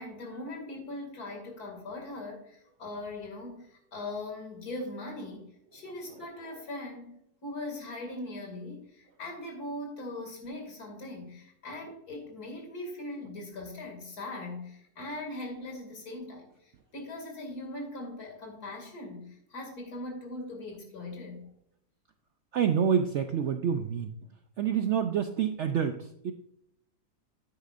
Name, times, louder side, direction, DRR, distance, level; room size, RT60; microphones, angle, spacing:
voice 1, 0.0-5.5 5.7-7.2 7.4-21.5, left 2 dB, 70° left, 2 dB, 2.9 m, -40 dB
voice 2, 22.5-24.2 24.6-26.3, right 8 dB, 70° right, 7 dB, 0.7 m, -28 dB
9.5 x 9.1 x 2.5 m, 0.76 s
omnidirectional pair, 1.7 m